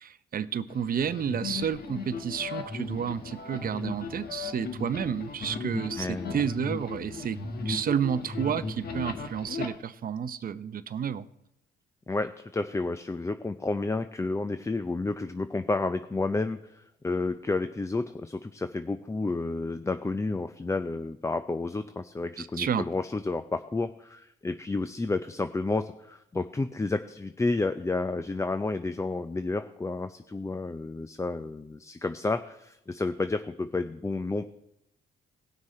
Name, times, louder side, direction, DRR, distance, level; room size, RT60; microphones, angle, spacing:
voice 1, 0.0-7.4 7.6-11.3 22.4-22.8, right 8 dB, 45° right, 14 dB, 0.7 m, -31 dB
sound 1, 0.7-9.7, left 4 dB, 50° left, 1.5 m, -36 dB
voice 2, 6.0-6.4 12.1-34.4, left 3 dB, 15° left, 10 dB, 0.5 m, -31 dB
17.5 x 6.2 x 4.3 m, 0.81 s
cardioid pair, 80°, 20 cm